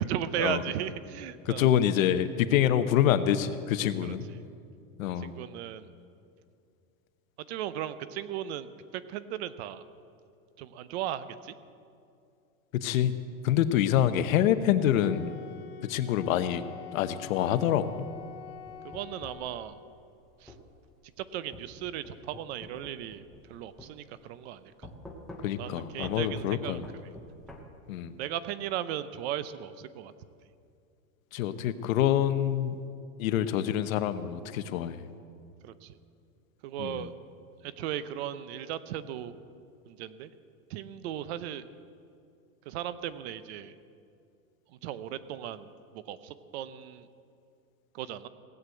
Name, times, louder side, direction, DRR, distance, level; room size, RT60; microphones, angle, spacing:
voice 1, 0.0-1.7 4.0-4.4 5.2-5.9 7.5-9.8 10.6-11.5 18.8-19.8 20.4-20.5 21.2-23.2 23.5-24.9 25.4-26.8 28.2-30.1 35.6-36.0 36.6-37.1 37.6-39.3 39.9-40.3 40.7-41.7 42.7-43.7 44.7-47.1 47.9-48.3, right 11 dB, 50° right, 14 dB, 0.7 m, -36 dB
voice 2, 1.6-4.2 5.0-5.3 12.8-13.1 13.4-15.4 15.8-16.6 16.9-18.0 25.4-26.8 27.9-28.2 31.3-32.8 33.2-35.1 36.8-37.1, left 10 dB, 70° left, 11 dB, 0.9 m, -26 dB
Wind instrument woodwind instrument, 15.0-19.9, left 10 dB, 45° left, 1.8 m, -46 dB
sound 1, 18.1-19.5 20.5-20.7 21.5-23.5 23.8-23.9 24.8-25.7 26.0-26.2 26.8-27.6, left 1 dB, ahead, 0.3 m, -46 dB
17.5 x 8.0 x 7.8 m, 2.4 s
supercardioid pair, 160°, 42 cm